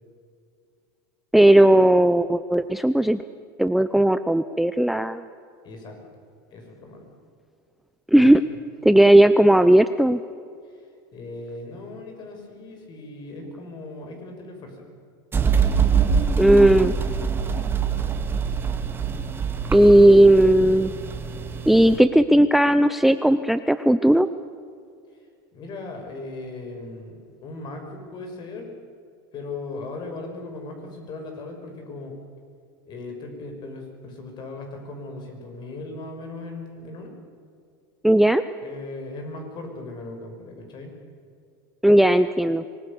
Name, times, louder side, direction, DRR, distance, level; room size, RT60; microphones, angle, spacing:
voice 1, 1.3-3.2 3.6-5.2 8.1-8.4 8.8-10.2 16.4-16.9 19.7-20.9 21.7-24.3 38.0-38.4 41.8-42.6, right 1 dB, ahead, 13 dB, 0.6 m, -16 dB
voice 2, 5.6-6.0 6.5-7.1 8.2-8.3 10.7-10.8 11.1-14.9 25.5-28.7 29.3-32.2 32.8-37.1 38.6-40.9, left 2 dB, 40° left, 4 dB, 6.2 m, -38 dB
sound 1, 15.3-22.0, right 6 dB, 20° right, 2.0 m, -24 dB
25.0 x 20.0 x 7.0 m, 2.3 s
supercardioid pair, 120°, 11 cm